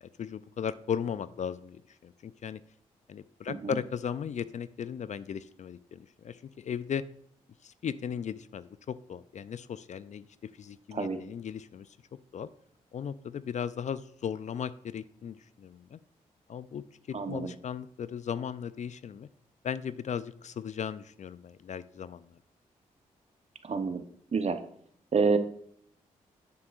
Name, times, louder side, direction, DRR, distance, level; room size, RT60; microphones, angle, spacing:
voice 1, 0.0-2.6 3.1-7.0 7.6-11.9 12.3-12.5 12.9-16.0 16.5-19.3 19.6-22.4, left 8 dB, 50° left, 16 dB, 0.4 m, -37 dB
voice 2, 17.1-17.5 23.6-24.0 24.3-24.6 25.1-25.4, right 4 dB, 45° right, 9 dB, 0.9 m, -28 dB
8.6 x 7.6 x 2.5 m, 0.65 s
supercardioid pair, 45°, 15 cm